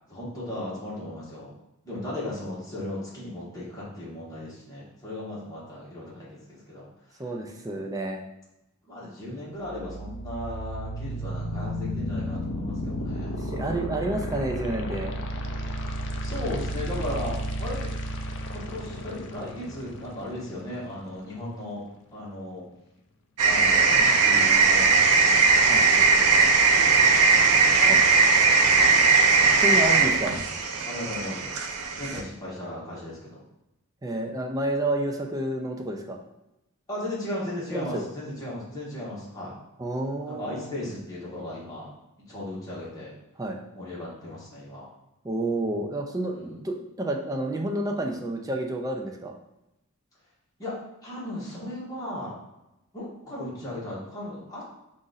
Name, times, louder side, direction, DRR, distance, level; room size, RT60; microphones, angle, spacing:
voice 1, 0.1-1.5 1.8-7.2 8.8-13.4 16.2-17.9 18.5-21.8 22.1-22.6 23.4-25.2 25.5-28.3 28.7-29.4 30.8-31.5 31.9-33.4 36.9-39.5 40.3-41.9 42.3-43.1 43.7-44.9 46.3-46.6 50.6-50.7 51.0-52.4 52.9-54.8, left 1 dB, 15° left, -8 dB, 1.3 m, -36 dB
voice 2, 7.2-8.2 13.4-15.1 24.0-24.1 25.7-25.9 27.9-28.0 29.5-30.3 34.0-36.2 37.7-38.0 39.8-40.7 43.4-43.6 45.2-49.3, right 1 dB, 15° right, 2 dB, 0.4 m, -30 dB
sound 1, 9.6-21.6, equal, 55° left, 0.4 m, -33 dB
sound 2, 23.4-32.2, right 4 dB, 80° right, 0.5 m, -19 dB
3.9 x 2.5 x 3.9 m, 0.91 s
head